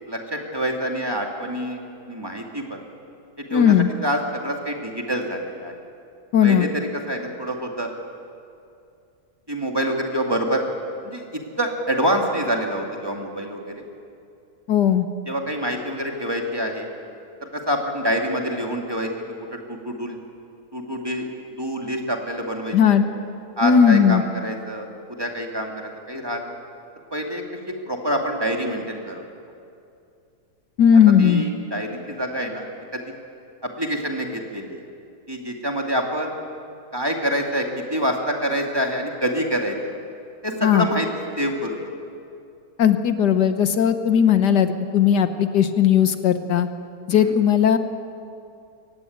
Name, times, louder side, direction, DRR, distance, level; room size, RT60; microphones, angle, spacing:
voice 1, 0.1-1.8 2.1-2.8 3.4-5.7 6.4-7.9 9.5-10.6 11.0-13.8 15.3-16.9 17.5-19.1 19.7-20.2 20.7-21.3 21.6-23.0 23.6-26.5 27.1-27.4 27.9-29.2 31.2-32.7 32.9-33.0 33.6-34.8 35.3-36.3 36.9-39.8 40.4-41.8 47.1-47.3, equal, 15° right, 1 dB, 2.2 m, -26 dB
voice 2, 3.5-3.9 6.3-6.7 14.7-15.1 22.7-23.0 23.6-24.2 30.8-31.4 40.6-40.9 42.8-46.7 47.1-47.8, left 8 dB, 80° left, 9 dB, 1.7 m, -17 dB
23.5 x 16.5 x 9.4 m, 2.5 s
omnidirectional pair, 1.8 m